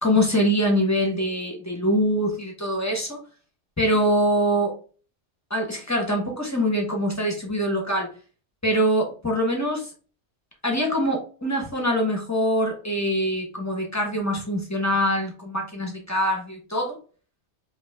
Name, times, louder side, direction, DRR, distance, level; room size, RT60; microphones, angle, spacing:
voice 1, 0.0-3.2 3.8-4.8 5.5-8.1 8.6-9.9 10.6-17.0, equal, 15° left, 0 dB, 0.9 m, -24 dB
5.3 x 2.5 x 2.3 m, 0.39 s
omnidirectional pair, 1.2 m